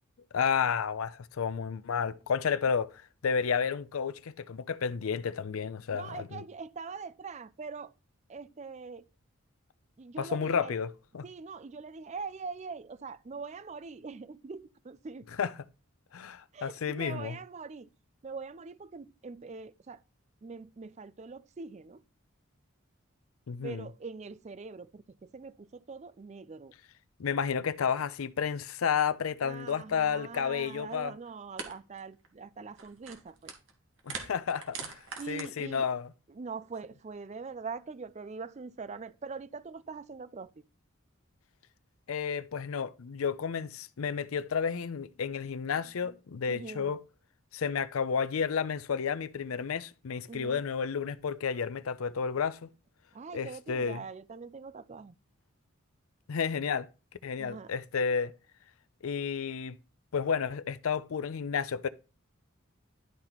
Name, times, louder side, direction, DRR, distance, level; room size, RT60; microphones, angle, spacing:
voice 1, 0.3-6.4 10.2-11.2 15.4-15.5 16.1-17.4 23.5-23.9 27.2-31.1 34.0-35.0 35.3-36.1 42.1-47.0 47.5-52.7 53.3-54.0 56.3-56.9 57.2-58.3 59.0-59.8 60.1-61.9, left 6 dB, 85° left, 0.5 m, -31 dB
voice 2, 5.9-7.9 8.3-9.1 10.0-10.8 11.2-15.3 16.5-17.9 18.2-20.0 20.4-22.0 23.6-26.7 29.4-33.5 35.2-35.9 36.3-40.6 46.5-46.9 50.3-50.6 53.1-55.2 57.4-57.7, right 4 dB, 30° right, 0.4 m, -43 dB
sound 1, 30.9-31.0 31.6-31.7 32.0-32.3 32.7-33.7 34.0-35.4, right 5 dB, 60° right, 1.9 m, -41 dB
11.5 x 4.4 x 4.0 m
head